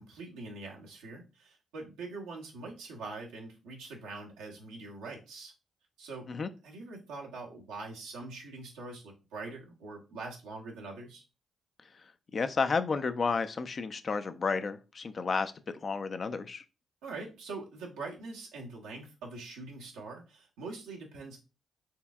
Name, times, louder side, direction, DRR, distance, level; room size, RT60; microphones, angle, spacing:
voice 1, 0.0-5.5 6.0-6.4 6.6-11.2 17.0-21.4, right 3 dB, 90° right, -1 dB, 0.9 m, -43 dB
voice 2, 12.3-15.5 15.8-16.6, left 4 dB, 50° left, 10 dB, 0.4 m, -31 dB
4.4 x 3.4 x 2.3 m, 0.31 s
supercardioid pair, 50°, 0 cm